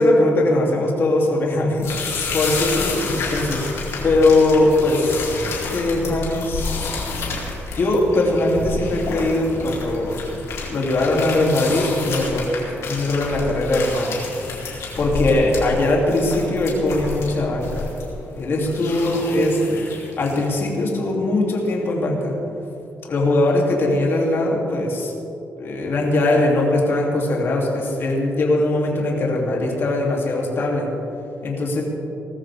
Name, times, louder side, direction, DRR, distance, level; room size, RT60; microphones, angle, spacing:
voice 1, 0.0-1.9 2.3-3.6 4.0-6.8 7.7-10.2 10.7-12.5 12.8-14.2 15.0-17.9 18.4-19.8 20.2-22.4 23.1-25.1 25.6-30.9 31.4-31.8, left 2 dB, 55° left, -2 dB, 3.1 m, -20 dB
sound 1, 1.8-20.5, left 4 dB, 75° left, 3.9 m, -30 dB
19.5 x 14.0 x 3.7 m, 2.9 s
cardioid pair, 100°, 5 cm